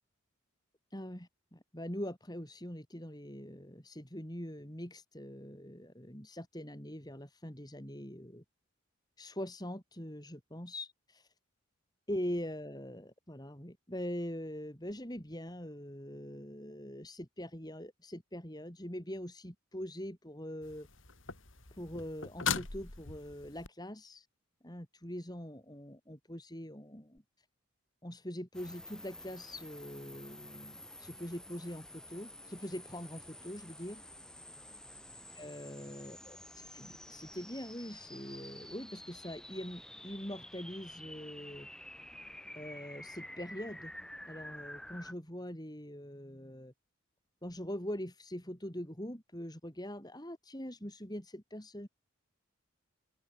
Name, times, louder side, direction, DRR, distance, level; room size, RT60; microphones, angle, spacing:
voice 1, 0.9-8.4 9.2-11.3 12.1-20.9 21.7-24.3 24.6-27.2 28.0-34.0 35.3-41.7 42.5-43.9 44.3-46.7 47.4-51.9, equal, 20° left, 4.1 m, -43 dB
sound 1, 20.6-23.7 27.2-27.3, left 6 dB, 65° left, 3.7 m, -39 dB
sound 2, 28.5-45.1, left 1 dB, 5° left, 6.2 m, -50 dB
open air
head